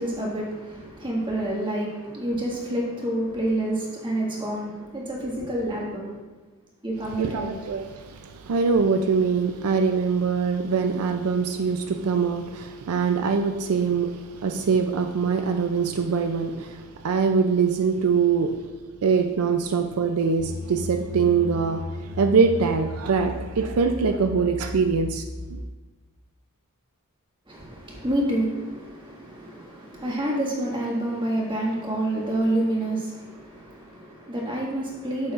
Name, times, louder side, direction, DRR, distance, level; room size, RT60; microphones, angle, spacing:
voice 1, 0.0-6.1 6.8-7.5 27.5-35.3, right 1 dB, 25° right, 1.8 m, -28 dB
voice 2, 7.2-18.5 19.0-25.2 25.5-25.6, right 5 dB, 80° right, 0.4 m, -23 dB
sound 1, 20.4-25.7, left 2 dB, 85° left, 0.7 m, -36 dB
9.1 x 7.0 x 2.5 m
head